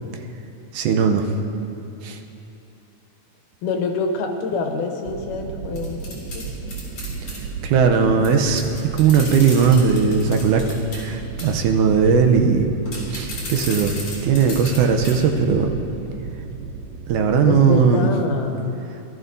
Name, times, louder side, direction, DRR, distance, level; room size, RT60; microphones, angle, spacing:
voice 1, 0.7-1.2 2.0-2.2 7.6-8.6 8.9-10.6 10.9-12.7 13.1-14.0 14.2-15.8 17.1-18.1, right 6 dB, 90° right, 4 dB, 2.3 m, -18 dB
voice 2, 3.6-6.5 15.5-15.6 17.5-18.8, left 4 dB, 90° left, 3 dB, 2.5 m, -26 dB
sound 1, 5.1-18.0, right 5 dB, 75° right, 1.8 m, -34 dB
sound 2, 5.8-7.4 8.2-8.3 8.5-11.0 11.4-11.6 12.9-14.8 15.0-15.1 15.6-15.7, left 2 dB, 50° left, 4.1 m, -34 dB
18.0 x 12.5 x 2.7 m, 2.8 s
omnidirectional pair, 3.6 m